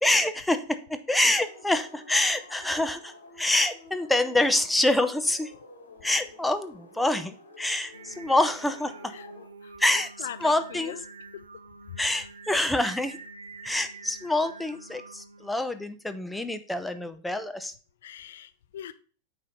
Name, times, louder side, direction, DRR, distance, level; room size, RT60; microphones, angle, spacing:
voice 1, 0.0-5.5 6.0-9.2 9.8-10.1 10.4-10.9 12.0-13.2 13.6-17.7, left 1 dB, 5° left, 9 dB, 0.6 m, -26 dB
sound 1, 1.1-9.5, left 2 dB, 75° left, 1.9 m, -50 dB
Singing, 7.9-15.5, right 3 dB, 75° right, 0.6 m, -47 dB
voice 2, 9.6-11.0 11.3-11.5 11.9-12.0 18.0-18.9, left 10 dB, 60° left, 13 dB, 0.5 m, -42 dB
9.1 x 3.5 x 3.9 m, 0.40 s
figure-of-eight pair, 90°, 0 cm